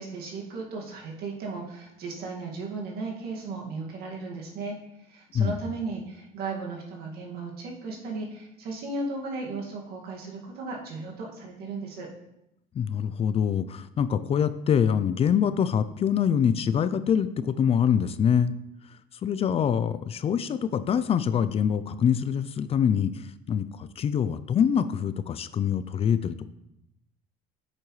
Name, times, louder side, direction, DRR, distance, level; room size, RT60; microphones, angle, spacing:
voice 1, 0.0-4.8 5.1-12.1, right 3 dB, 70° right, -1 dB, 2.0 m, -35 dB
voice 2, 12.7-18.5 19.2-26.5, left 8 dB, 35° left, 13 dB, 0.4 m, -25 dB
8.4 x 6.6 x 3.2 m, 0.83 s
cardioid pair, 120°, 17 cm